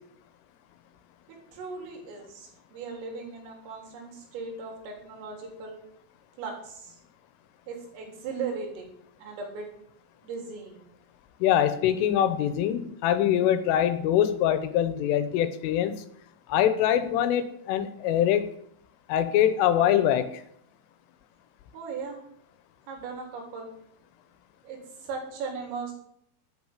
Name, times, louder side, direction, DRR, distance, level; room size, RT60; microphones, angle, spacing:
voice 1, 1.5-5.8 6.4-7.0 7.7-8.9 9.2-9.7 10.2-10.9 21.7-22.2 22.9-23.7 24.6-25.9, right 4 dB, 80° right, 1 dB, 6.2 m, -37 dB
voice 2, 11.4-15.9 16.5-18.5 19.1-20.4, left 10 dB, 80° left, 12 dB, 3.4 m, -23 dB
12.5 x 9.3 x 7.3 m, 0.69 s
omnidirectional pair, 5.9 m